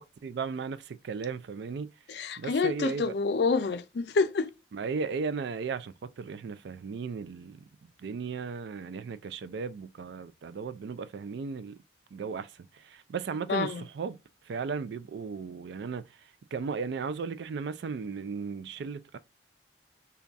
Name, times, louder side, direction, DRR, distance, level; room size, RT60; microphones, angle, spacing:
voice 1, 0.2-1.9 2.4-3.1 4.7-11.8 12.1-14.2 14.5-16.1 16.5-19.2, right 5 dB, 65° right, 0.3 m, -36 dB
voice 2, 2.1-4.5 13.5-13.8, left 4 dB, 60° left, 0.4 m, -28 dB
3.5 x 2.3 x 3.9 m
head